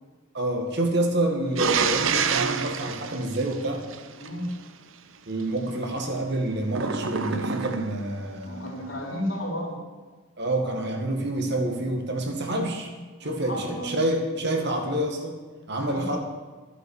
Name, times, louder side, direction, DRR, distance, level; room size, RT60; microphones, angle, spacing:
voice 1, 0.3-3.8 5.3-8.8 10.4-12.9 13.2-15.4 15.7-16.2, right 1 dB, 50° right, 3 dB, 2.0 m, -27 dB
sound 1, 1.6-4.3 6.7-8.1, right 6 dB, 70° right, 0.8 m, -27 dB
voice 2, 4.2-4.5 8.4-9.8 13.2-13.9 15.8-16.1, left 1 dB, 60° left, -2 dB, 3.9 m, -33 dB
12.5 x 9.3 x 7.3 m, 1.4 s
head